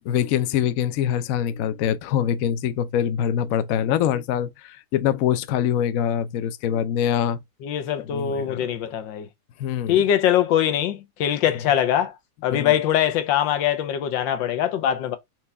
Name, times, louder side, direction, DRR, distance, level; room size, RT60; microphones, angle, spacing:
voice 1, 0.0-7.4 8.1-8.7 9.6-10.0 12.5-12.7, left 9 dB, 70° left, 0.8 m, -24 dB
voice 2, 7.6-9.3 9.9-12.1 12.4-15.2, left 10 dB, 90° left, 1.5 m, -22 dB
4.5 x 2.8 x 3.4 m
omnidirectional pair, 2.0 m